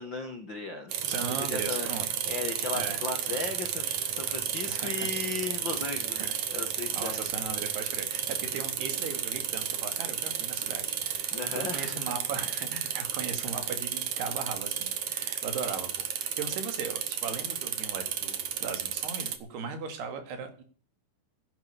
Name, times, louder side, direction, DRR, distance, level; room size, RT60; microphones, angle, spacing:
voice 1, 0.0-1.9 2.3-7.2 11.3-12.0, left 3 dB, 60° left, 4 dB, 1.2 m, -36 dB
sound 1, 0.9-19.4, right 9 dB, 55° right, 2.4 m, -33 dB
voice 2, 1.1-2.1 2.7-3.0 4.7-5.1 6.2-6.4 6.9-20.6, right 5 dB, 80° right, 7 dB, 4.3 m, -38 dB
11.0 x 10.5 x 7.0 m, 0.41 s
omnidirectional pair, 4.7 m